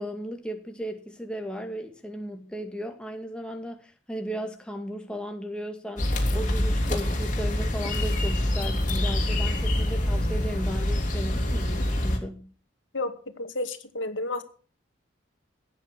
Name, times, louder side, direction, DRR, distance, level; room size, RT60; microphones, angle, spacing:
voice 1, 0.0-12.5, equal, 5° left, 2.2 m, -36 dB
sound 1, 6.0-12.2, left 1 dB, 40° left, 3.6 m, -26 dB
voice 2, 12.9-14.4, left 2 dB, 90° left, 2.2 m, -31 dB
16.5 x 10.0 x 6.2 m
head